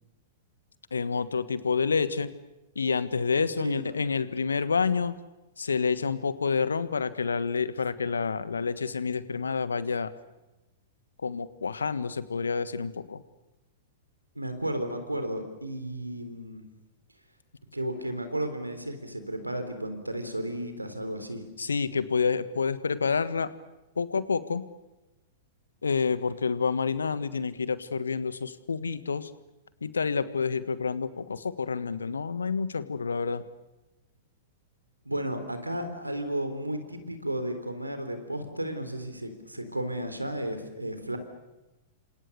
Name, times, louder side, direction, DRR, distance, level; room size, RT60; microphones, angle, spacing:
voice 1, 0.9-2.3 2.7-5.1 5.6-10.1 11.2-13.2 21.6-23.5 24.0-24.6 25.8-29.3 29.8-33.4, left 5 dB, 75° left, 14 dB, 1.4 m, -28 dB
voice 2, 14.4-16.6 17.7-21.4 35.0-41.2, right 1 dB, 90° right, 8 dB, 3.8 m, -33 dB
29.5 x 26.0 x 6.8 m, 1.0 s
figure-of-eight pair, 100°, 0 cm